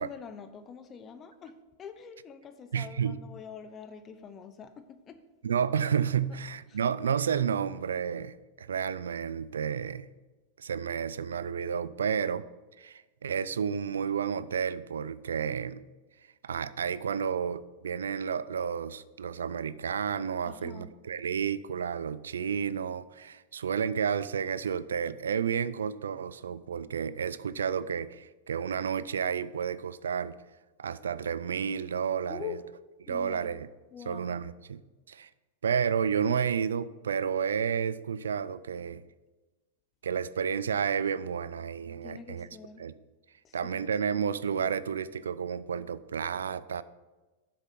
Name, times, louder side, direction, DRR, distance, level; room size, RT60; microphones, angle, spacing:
voice 1, 0.0-5.2 6.7-6.8 20.4-20.9 32.3-32.6 33.1-33.5 33.9-34.3 42.0-42.8 43.4-43.9, left 7 dB, 30° left, 10 dB, 0.8 m, -45 dB
voice 2, 2.7-3.2 5.4-10.1 10.6-12.5 12.8-15.8 16.4-30.4 30.8-32.6 33.1-33.7 34.1-34.8 35.1-35.3 35.6-39.0 40.0-42.5 42.8-42.9 43.5-46.8, right 7 dB, 85° right, 17 dB, 0.3 m, -31 dB
7.3 x 7.0 x 5.3 m, 1.2 s
hypercardioid pair, 110°, 0 cm